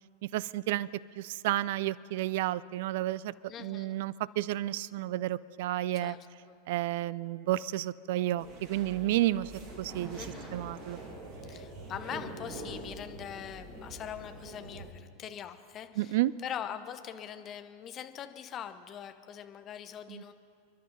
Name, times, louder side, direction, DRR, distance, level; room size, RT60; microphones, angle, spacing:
voice 1, 0.3-0.9 1.2-3.3 3.6-6.2 6.7-9.5 9.8-10.3 10.5-11.0 16.0-16.3 20.1-20.2, right 15 dB, 50° right, 21 dB, 0.4 m, -31 dB
voice 2, 3.5-4.0 6.0-6.5 10.1-10.5 11.5-20.3, left 9 dB, 30° left, 9 dB, 0.9 m, -42 dB
sound 1, 8.4-14.9, right 2 dB, 35° right, 2.4 m, -45 dB
29.5 x 11.5 x 4.0 m, 2.4 s
figure-of-eight pair, 90°, 0 cm